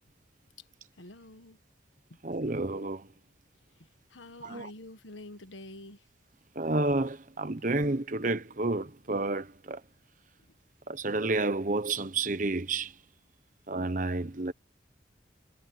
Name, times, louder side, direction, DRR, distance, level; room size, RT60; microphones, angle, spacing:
voice 1, 1.0-1.6 4.1-6.0, left 1 dB, 85° left, 1.6 m, -47 dB
voice 2, 2.2-3.1 4.4-4.7 6.5-9.8 10.9-12.9 13.7-14.5, right 2 dB, 45° right, 1.0 m, -30 dB
head